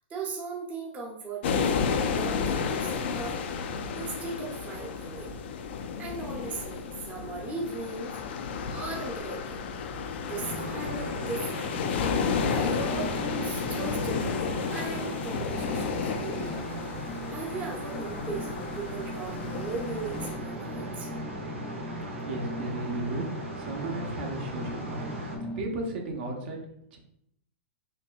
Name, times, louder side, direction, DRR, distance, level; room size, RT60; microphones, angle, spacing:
voice 1, 0.1-3.4 3.9-5.3 6.0-8.2 8.7-9.6 10.3-11.7 12.5-14.4 14.7-21.1, right 3 dB, 20° right, -1 dB, 0.8 m, -38 dB
sound 1, 1.4-20.4, left 6 dB, 60° left, 0.5 m, -32 dB
sound 2, 10.3-25.4, right 1 dB, 90° right, 1.1 m, -39 dB
sound 3, 11.7-25.6, equal, 10° left, 0.5 m, -40 dB
voice 2, 22.2-23.3 23.6-25.1 25.6-26.6 26.9-27.0, right 2 dB, 55° right, 1 dB, 0.9 m, -34 dB
4.2 x 2.9 x 2.5 m, 0.73 s
hypercardioid pair, 115°, 7 cm